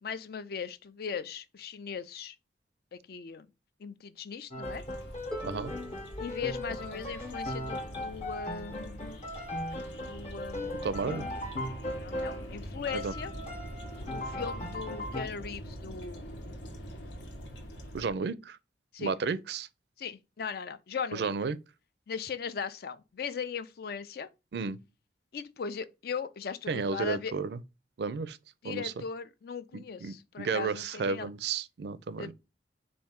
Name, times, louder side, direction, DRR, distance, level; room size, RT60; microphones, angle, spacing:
voice 1, 0.0-2.4 2.9-3.5 3.8-4.8 6.2-9.1 10.0-11.3 12.0-13.3 14.0-16.4 18.9-19.1 20.0-21.3 22.1-24.3 25.3-27.3 28.6-31.3 32.2-32.3, left 6 dB, 55° left, 0.4 m, -39 dB
Piano, 4.5-12.6 12.9-15.2, left 1 dB, 35° left, 0.8 m, -38 dB
sound 1, 4.6-18.1, equal, 90° left, 1.1 m, -44 dB
Harp, 5.3-11.1 12.2-12.3, equal, 5° left, 0.7 m, -49 dB
voice 2, 5.4-5.7 10.8-11.3 12.9-13.1 17.9-18.6 19.0-19.7 21.1-21.6 24.5-24.8 26.7-27.6 28.0-28.4 28.6-28.9 29.7-32.3, right 5 dB, 65° right, 0.4 m, -32 dB
4.3 x 2.6 x 3.5 m
head